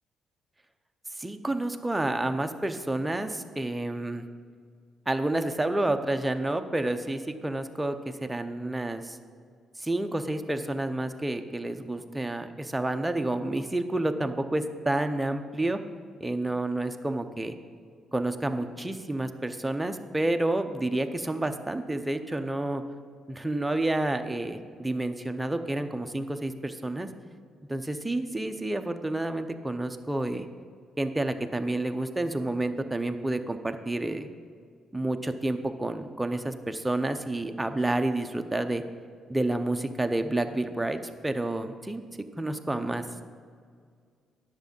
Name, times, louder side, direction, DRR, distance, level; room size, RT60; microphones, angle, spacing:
voice 1, 1.2-4.2 5.1-9.2 9.8-15.8 16.2-17.5 18.1-22.8 23.3-27.1 27.7-30.5 31.0-34.3 34.9-38.8 39.3-42.0 42.4-43.3, right 1 dB, 10° right, 7 dB, 0.7 m, -29 dB
10.5 x 7.3 x 5.3 m, 2.1 s
cardioid pair, 90°, 0 cm